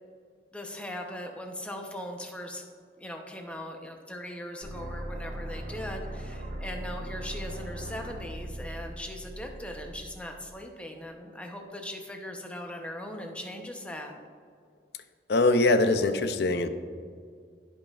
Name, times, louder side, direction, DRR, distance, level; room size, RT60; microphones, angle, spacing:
voice 1, 0.5-2.6 3.0-14.1, left 1 dB, 5° left, 2 dB, 0.8 m, -39 dB
sound 1, 4.6-10.6, right 1 dB, 75° right, 1.4 m, -39 dB
voice 2, 15.3-16.7, left 2 dB, 60° left, 10 dB, 0.5 m, -22 dB
14.5 x 5.5 x 2.4 m, 2.1 s
head